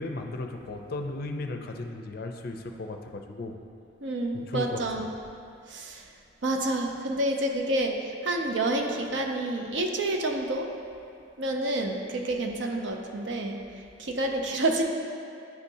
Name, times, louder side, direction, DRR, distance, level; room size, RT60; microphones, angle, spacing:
voice 1, 0.0-3.6 4.3-5.1, left 2 dB, 50° left, 4 dB, 0.4 m, -35 dB
voice 2, 4.0-5.1 5.7-6.0 6.4-10.7 11.4-13.6 14.0-14.8, right 1 dB, 70° right, 2 dB, 0.6 m, -28 dB
9.8 x 4.2 x 2.7 m, 2.4 s
head